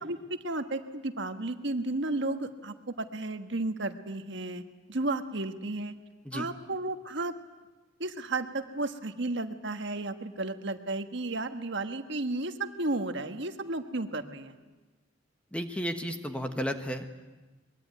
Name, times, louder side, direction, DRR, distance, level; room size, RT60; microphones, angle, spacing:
voice 1, 0.0-4.6 4.9-5.9 6.3-7.3 8.0-14.6, right 2 dB, 60° right, 7 dB, 1.4 m, -33 dB
voice 2, 15.5-17.1, equal, 5° left, 6 dB, 1.5 m, -33 dB
23.5 x 22.0 x 9.4 m, 1.2 s
head